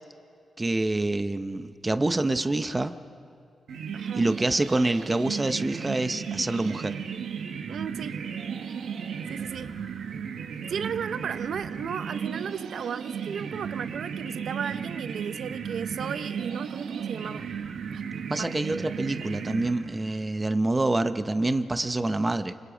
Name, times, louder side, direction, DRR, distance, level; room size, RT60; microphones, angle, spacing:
voice 1, 0.6-2.9 4.1-6.9 18.3-22.5, right 2 dB, 15° right, 11 dB, 0.6 m, -26 dB
sound 1, 3.7-20.3, right 7 dB, 80° right, 1.2 m, -35 dB
voice 2, 3.9-4.3 7.7-8.2 9.3-9.7 10.7-17.5 17.9-18.0 18.3-18.6, right 7 dB, 60° right, 13 dB, 0.7 m, -35 dB
27.0 x 26.0 x 5.0 m, 2.3 s
wide cardioid pair, 170°, 0 cm